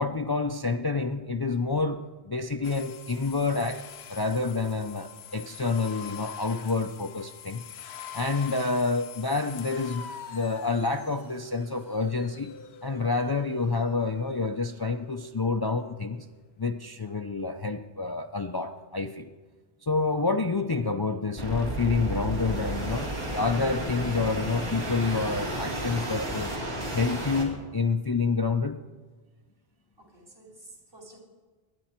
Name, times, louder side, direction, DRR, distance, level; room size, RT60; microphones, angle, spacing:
voice 1, 0.0-3.8 4.1-7.6 8.1-12.5 12.8-16.3 16.6-19.3 19.8-26.6 26.9-28.8, left 4 dB, 35° left, 6 dB, 0.4 m, -28 dB
sound 1, 2.6-14.4, left 9 dB, 90° left, 1.0 m, -44 dB
sound 2, 21.4-27.4, right 1 dB, 85° right, 2.9 m, -32 dB
voice 2, 30.0-31.2, right 2 dB, 65° right, 0 dB, 3.4 m, -50 dB
22.0 x 10.0 x 4.4 m, 1.3 s
omnidirectional pair, 1.0 m